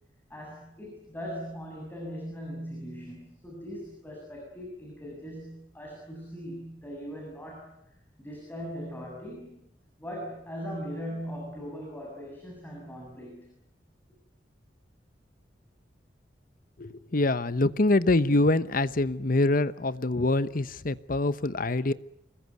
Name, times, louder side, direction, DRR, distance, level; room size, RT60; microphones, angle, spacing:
voice 1, 0.3-7.8 8.2-9.6 10.0-13.5, equal, 10° left, -1 dB, 7.3 m, -40 dB
voice 2, 16.8-21.9, left 2 dB, 50° left, 15 dB, 1.0 m, -25 dB
26.0 x 21.0 x 9.6 m, 0.76 s
head